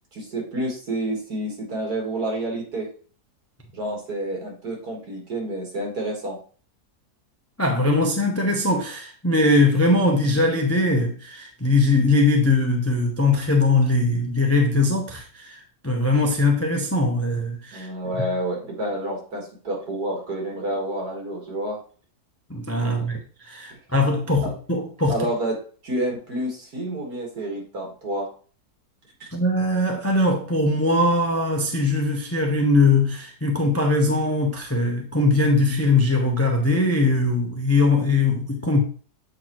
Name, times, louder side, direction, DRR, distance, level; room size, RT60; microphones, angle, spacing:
voice 1, 0.1-2.9 3.7-6.4 17.7-21.8 22.8-23.2 24.4-24.5 25.1-28.3 29.2-29.3, right 1 dB, 75° right, 2.4 m, -29 dB
voice 2, 7.6-17.9 22.5-23.2 23.5-25.1 29.3-38.8, left 2 dB, 20° left, 0.4 m, -21 dB
7.5 x 4.4 x 3.0 m
omnidirectional pair, 1.7 m